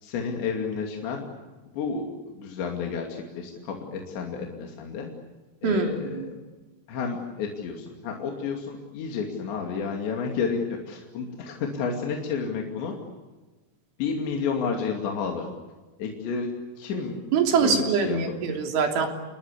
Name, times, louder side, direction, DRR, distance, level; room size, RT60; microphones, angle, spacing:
voice 1, 0.0-1.3 1.7-2.1 2.3-5.1 5.6-6.2 6.9-12.9 14.0-15.5 16.0-17.2 17.6-18.2 18.4-18.5, left 5 dB, 65° left, 1 dB, 4.7 m, -31 dB
voice 2, 5.6-6.3 16.9-17.0 17.3-19.1, right 5 dB, 80° right, 4 dB, 5.6 m, -24 dB
29.5 x 22.0 x 8.4 m, 1.3 s
omnidirectional pair, 5.5 m